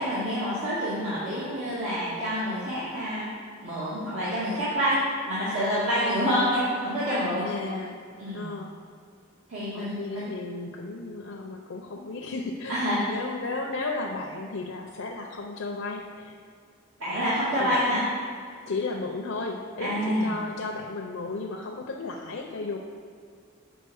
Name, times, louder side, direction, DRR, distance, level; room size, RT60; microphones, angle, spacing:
voice 1, 0.0-3.3 3.6-5.0 5.3-7.4 8.2-8.4 9.5-10.2 12.7-13.0 17.0-18.0 19.8-20.3, equal, 85° right, -12 dB, 2.3 m, -27 dB
voice 2, 6.0-6.6 7.4-8.0 8.3-8.7 9.7-16.3 17.6-17.8 18.7-22.8, left 3 dB, 85° left, 0 dB, 0.7 m, -34 dB
7.9 x 4.9 x 6.3 m, 2.2 s
head